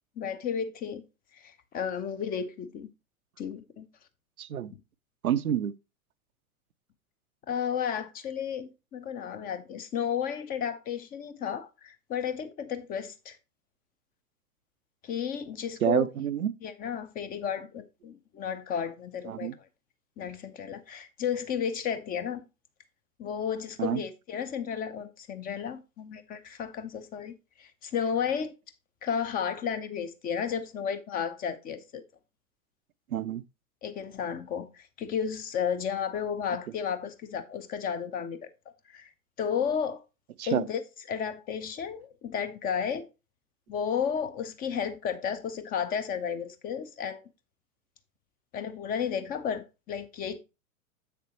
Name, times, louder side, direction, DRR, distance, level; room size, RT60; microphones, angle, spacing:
voice 1, 0.2-1.0 1.3-2.9 3.4-3.9 7.5-13.4 15.0-16.1 16.6-19.5 20.2-22.4 23.2-28.5 29.0-32.0 33.8-38.5 38.9-39.1 39.4-40.0 40.5-40.8 41.1-43.1 43.7-47.2 48.5-50.4, left 7 dB, 20° left, 0.6 m, -33 dB
voice 2, 4.4-4.7 5.2-5.7 15.8-16.5 19.3-19.5 23.8-24.0 33.1-33.4 40.4-40.6, right 10 dB, 80° right, 0.6 m, -28 dB
7.4 x 6.7 x 2.9 m
figure-of-eight pair, 95°, 43 cm